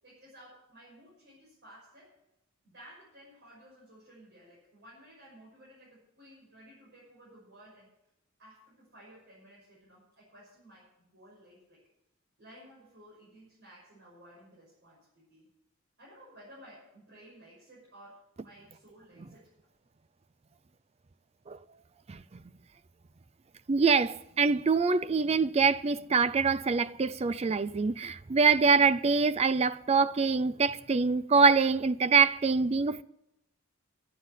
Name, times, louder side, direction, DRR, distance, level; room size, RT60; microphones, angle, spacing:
voice 1, 0.0-2.1 2.6-7.9 8.4-10.8 11.1-11.8 12.4-15.5 16.0-19.5, equal, 60° right, 6.3 m, -55 dB
voice 2, 23.7-33.0, right 4 dB, 30° right, 0.4 m, -25 dB
11.5 x 9.8 x 8.1 m
head